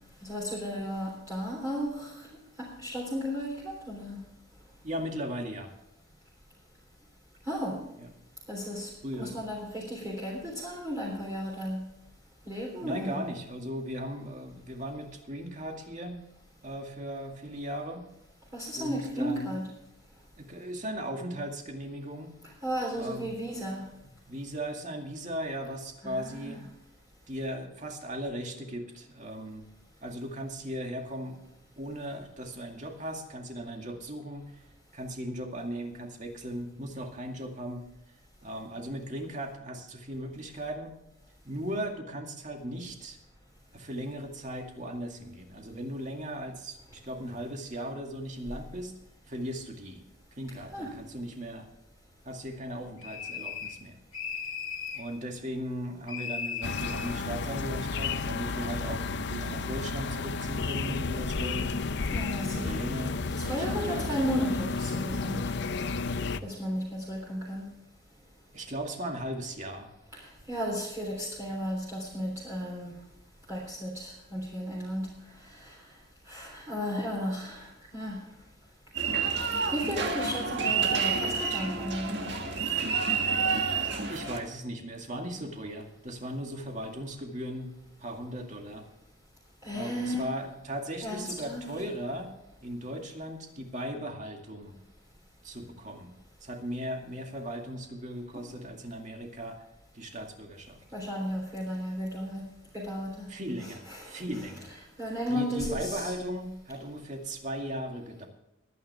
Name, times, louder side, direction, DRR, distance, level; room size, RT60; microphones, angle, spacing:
voice 1, 0.2-2.3 2.6-4.2 7.5-7.8 8.5-11.8 12.4-13.2 18.5-19.7 22.6-23.8 26.0-26.6 50.7-50.9 62.1-62.7 63.4-65.4 66.4-67.6 70.1-72.9 73.5-75.1 75.5-75.7 76.3-78.2 79.7-82.3 89.6-90.3 91.0-91.7 100.9-102.5 102.7-103.3 103.6-104.5 105.0-106.1, equal, 15° right, -4 dB, 3.4 m, -34 dB
voice 2, 4.8-5.7 9.0-9.4 12.8-16.2 16.6-18.1 18.8-19.5 20.4-22.4 23.0-23.3 24.3-26.6 27.3-29.7 30.0-31.4 31.8-34.6 34.9-37.9 38.4-40.9 41.4-43.2 43.7-48.9 49.3-50.0 50.3-51.7 52.2-54.0 54.9-61.8 62.5-64.2 68.5-69.9 84.1-87.7 88.0-88.8 89.7-92.3 92.6-94.8 95.4-96.1 96.4-99.6 99.9-100.8 103.3-104.7 105.3-108.3, equal, 35° right, 3 dB, 2.2 m, -37 dB
sound 1, 53.0-53.8 54.1-55.1 56.1-57.1, left 6 dB, 85° left, 2.0 m, -36 dB
sound 2, 56.6-66.4, left 4 dB, 55° left, 0.6 m, -32 dB
sound 3, 78.9-84.4, right 5 dB, 55° right, 1.8 m, -29 dB
21.5 x 9.6 x 3.5 m, 0.88 s
head